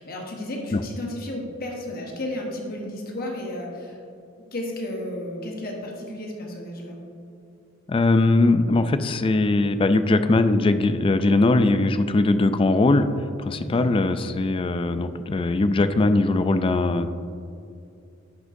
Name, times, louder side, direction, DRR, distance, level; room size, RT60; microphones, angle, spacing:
voice 1, 0.0-4.0 4.5-7.0 13.6-13.9, left 1 dB, 50° left, 0 dB, 1.1 m, -33 dB
voice 2, 7.9-13.1 13.4-17.1, left 2 dB, 25° left, 11 dB, 0.3 m, -20 dB
10.5 x 6.2 x 2.6 m, 2.5 s
head